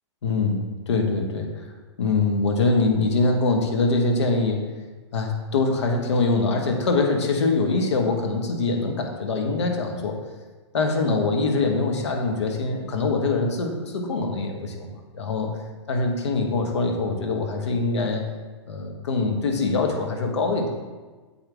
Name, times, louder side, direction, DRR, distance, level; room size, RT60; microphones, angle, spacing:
voice 1, 0.2-1.5 2.0-4.6 5.1-10.2 10.7-15.5 15.9-18.2 18.7-20.7, left 3 dB, 75° left, 2 dB, 1.5 m, -23 dB
8.4 x 7.9 x 3.5 m, 1.3 s
hypercardioid pair, 115°, 15 cm